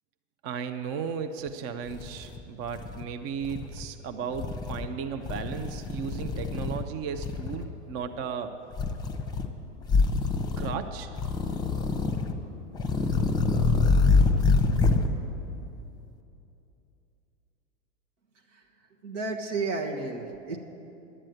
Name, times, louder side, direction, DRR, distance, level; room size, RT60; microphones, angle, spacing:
voice 1, 0.4-8.5 10.6-11.1, right 6 dB, 40° right, 8 dB, 0.6 m, -35 dB
sound 1, 1.5-1.6 1.9-3.0 3.4-3.9 4.3-4.9 5.2-6.9 7.2-7.7 8.7-9.5 9.8-10.8 11.2-12.4 12.7-15.1, left 4 dB, 10° left, 0.8 m, -26 dB
voice 2, 19.0-20.6, right 3 dB, 85° right, 3 dB, 1.4 m, -32 dB
11.0 x 7.5 x 9.1 m, 2.9 s
hypercardioid pair, 120°, 36 cm